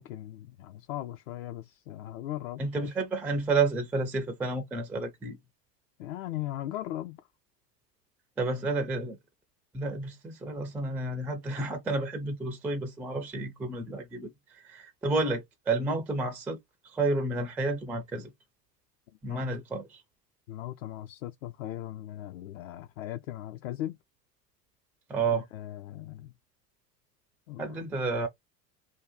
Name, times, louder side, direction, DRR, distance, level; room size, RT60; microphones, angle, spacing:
voice 1, 0.0-2.9 6.0-7.2 19.3-19.4 20.5-24.0 25.3-26.3 27.5-27.9, left 13 dB, 55° left, 0.6 m, -38 dB
voice 2, 2.6-5.4 8.4-9.2 9.7-16.6 16.8-18.3 19.2-20.0 25.1-25.4 27.6-28.3, right 3 dB, 5° right, 0.3 m, -30 dB
2.8 x 2.2 x 3.6 m
hypercardioid pair, 90°, 49 cm